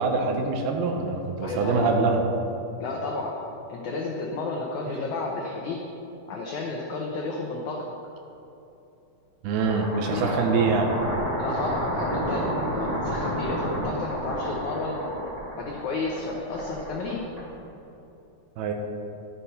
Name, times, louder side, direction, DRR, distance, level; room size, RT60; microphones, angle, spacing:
voice 1, 0.0-2.2 9.4-10.9 18.6-18.7, right 4 dB, 75° right, 3 dB, 2.7 m, -24 dB
voice 2, 1.4-1.9 2.8-3.4 3.7-5.8 6.3-7.8 9.9-10.5 11.4-15.0 15.6-17.2, left 3 dB, 80° left, -1 dB, 1.7 m, -32 dB
sound 1, 9.5-17.8, equal, 25° right, 2.4 m, -31 dB
12.5 x 7.0 x 5.8 m, 2.9 s
omnidirectional pair, 4.7 m